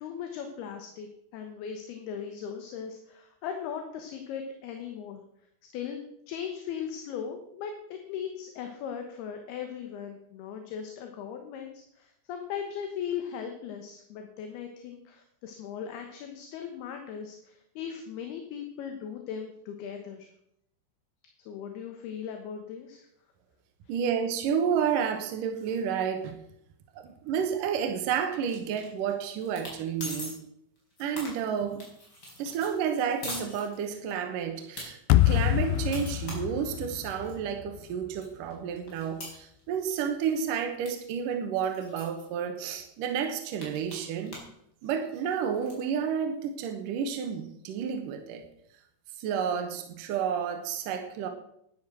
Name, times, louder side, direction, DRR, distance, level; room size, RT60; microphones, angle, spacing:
voice 1, 0.0-5.2 5.7-6.0 6.3-20.3 21.5-23.1, left 8 dB, 70° left, 5 dB, 2.8 m, -38 dB
voice 2, 23.9-26.4 26.9-30.4 31.0-31.9 32.4-35.0 35.3-44.4 44.8-48.4 49.2-51.3, right 7 dB, 75° right, 5 dB, 1.9 m, -31 dB
sound 1, 28.5-29.1 29.4-29.7 30.0-30.3 30.8-34.1 34.5-34.8 35.3-37.3 37.8-37.9 38.2-40.0 40.2-40.5 40.8-40.9 41.2-41.3 41.6-42.2 42.8-42.9 43.1-44.5 44.8-45.8, left 1 dB, 20° left, 4.6 m, -42 dB
sound 2, 35.1-38.2, left 14 dB, 85° left, 2.4 m, -26 dB
12.0 x 10.5 x 6.2 m, 0.74 s
omnidirectional pair, 5.5 m